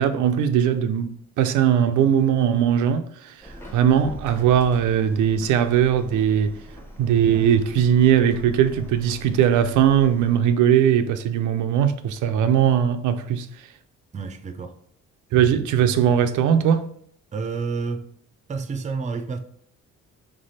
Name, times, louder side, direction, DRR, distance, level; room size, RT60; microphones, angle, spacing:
voice 1, 0.0-6.6 7.0-13.5 15.3-16.9, right 9 dB, 80° right, 0.4 m, -20 dB
Subway metro underground, 3.4-10.4, equal, 10° left, 0.9 m, -42 dB
voice 2, 14.1-14.8 17.3-18.1 18.5-19.4, right 4 dB, 25° right, 0.5 m, -29 dB
3.4 x 3.3 x 4.0 m
cardioid pair, 90°, 30 cm